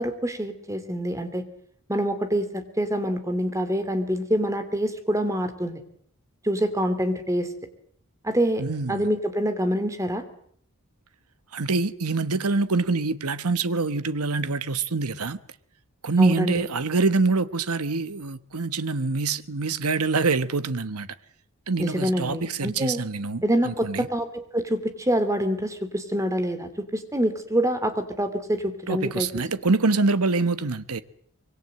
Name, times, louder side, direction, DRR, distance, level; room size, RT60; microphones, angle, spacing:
voice 1, 0.0-1.4 1.9-5.8 6.4-7.5 8.2-8.6 8.9-10.2 16.2-16.6 21.8-23.0 23.4-29.3, equal, 15° right, 2.6 m, -26 dB
voice 2, 8.6-9.1 11.5-15.4 16.0-21.1 21.7-24.1 28.9-31.0, right 3 dB, 85° right, 1.2 m, -25 dB
25.5 x 23.0 x 7.7 m
head